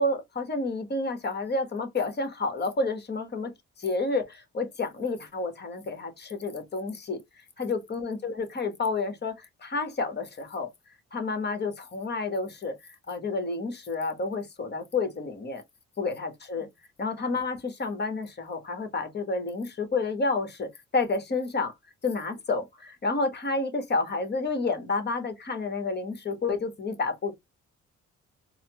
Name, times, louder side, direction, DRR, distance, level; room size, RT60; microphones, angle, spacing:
voice 1, 0.0-3.5 3.8-7.2 7.6-10.7 11.1-15.6 16.0-16.7 17.0-21.7 22.0-27.3, left 3 dB, 35° left, 1.1 m, -30 dB
4.1 x 2.0 x 2.8 m
cardioid pair, 90°, 30 cm